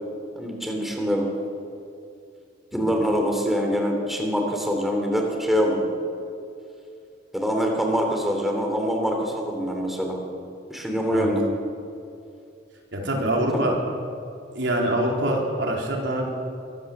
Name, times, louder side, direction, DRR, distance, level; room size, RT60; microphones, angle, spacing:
voice 1, 0.3-1.3 2.7-5.8 7.3-10.2 10.7-11.4 13.5-13.6, equal, ahead, 1 dB, 3.1 m, -24 dB
voice 2, 12.9-13.8 14.5-16.3, right 1 dB, 75° right, 0 dB, 4.1 m, -25 dB
23.5 x 15.5 x 7.4 m, 2.6 s
head